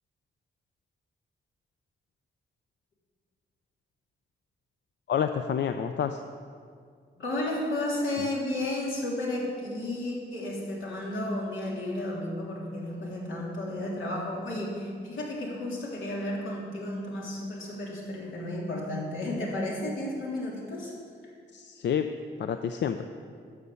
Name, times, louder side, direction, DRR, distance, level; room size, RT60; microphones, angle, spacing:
voice 1, 5.1-6.2 21.5-22.1 22.4-23.1, left 8 dB, 65° left, 8 dB, 0.5 m, -28 dB
voice 2, 7.2-20.9, left 1 dB, 90° left, -4 dB, 3.3 m, -33 dB
12.5 x 6.5 x 8.4 m, 2.2 s
cardioid pair, 115°, 19 cm